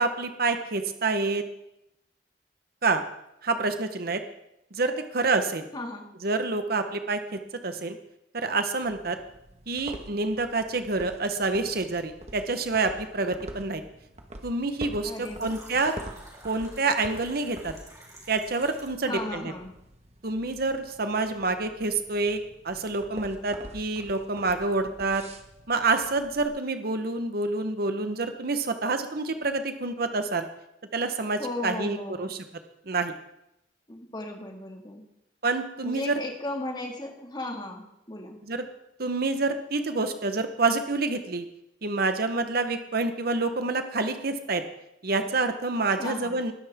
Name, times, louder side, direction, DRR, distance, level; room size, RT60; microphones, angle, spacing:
voice 1, 0.0-1.4 2.8-3.0 3.4-4.2 4.7-5.7 6.2-8.0 8.3-9.2 9.7-13.8 14.4-15.9 16.4-17.7 18.3-19.4 20.2-22.4 22.6-25.2 25.7-30.5 30.9-32.4 32.9-33.1 35.4-36.2 38.4-38.6 39.0-41.4 41.8-44.6 45.0-46.5, right 3 dB, 55° right, 8 dB, 1.0 m, -27 dB
voice 2, 5.7-6.1 15.1-15.5 19.0-19.8 31.4-32.3 33.9-35.0 35.8-38.4 46.0-46.4, left 2 dB, 25° left, 2 dB, 2.0 m, -36 dB
sound 1, 8.8-26.5, right 1 dB, 35° right, 1.4 m, -46 dB
Fill (with liquid), 15.2-19.1, right 1 dB, 20° right, 3.5 m, -49 dB
20.0 x 10.5 x 3.6 m, 0.84 s
head